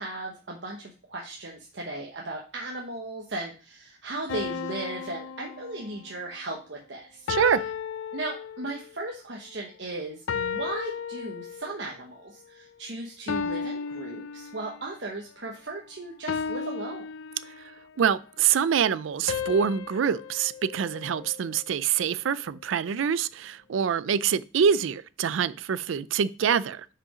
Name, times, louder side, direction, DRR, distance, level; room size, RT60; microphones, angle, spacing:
voice 1, 0.0-7.3 8.1-17.1, right 2 dB, 65° right, 1.0 m, -36 dB
sound 1, 4.3-6.2 7.3-8.9 10.3-11.9 13.3-15.0 16.3-17.9 19.3-21.6, left 6 dB, 85° left, 0.4 m, -34 dB
voice 2, 7.3-7.6 18.0-26.9, right 7 dB, 80° right, 0.4 m, -25 dB
5.7 x 5.0 x 4.9 m
head